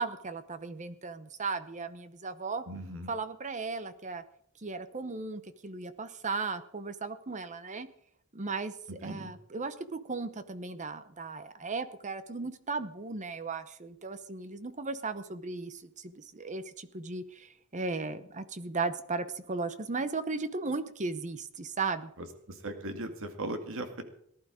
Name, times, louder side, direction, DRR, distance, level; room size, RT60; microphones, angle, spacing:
voice 1, 0.0-2.6 3.1-4.2 4.6-7.9 8.3-22.1, right 3 dB, 35° right, 12 dB, 0.9 m, -36 dB
voice 2, 2.7-3.1 9.0-9.3 22.6-24.0, right 1 dB, 60° right, 6 dB, 2.1 m, -38 dB
18.5 x 11.5 x 5.0 m, 0.68 s
head